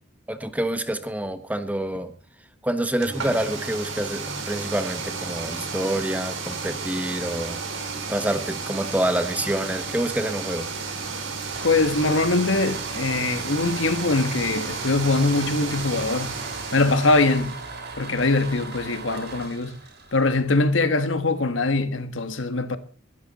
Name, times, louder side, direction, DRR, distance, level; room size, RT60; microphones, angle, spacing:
voice 1, 0.3-2.1 2.6-7.6 7.9-10.7, right 1 dB, 10° right, 1.3 m, -27 dB
sound 1, 3.0-17.6, right 4 dB, 80° right, 4.2 m, -32 dB
sound 2, 11.4-21.0, right 3 dB, 55° right, 6.7 m, -39 dB
voice 2, 11.6-16.3 16.7-17.6 18.0-19.8 20.1-22.8, left 3 dB, 75° left, 1.4 m, -22 dB
22.0 x 12.5 x 4.2 m
head